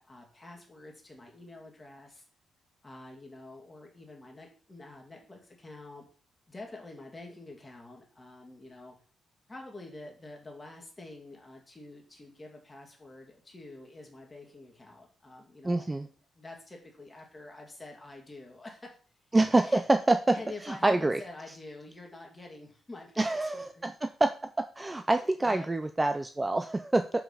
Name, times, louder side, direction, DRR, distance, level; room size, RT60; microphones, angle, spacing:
voice 1, 0.0-2.2 2.8-6.0 6.5-8.9 9.5-16.1 16.4-19.0 19.6-19.8 20.3-23.8 25.4-25.9, left 2 dB, 20° left, 0 dB, 2.5 m, -47 dB
voice 2, 15.6-16.1 19.3-20.4 20.6-21.2 23.2-24.3 24.6-27.2, right 2 dB, 15° right, 8 dB, 0.4 m, -26 dB
6.9 x 5.6 x 5.6 m, 0.42 s
cardioid pair, 140°, 0 cm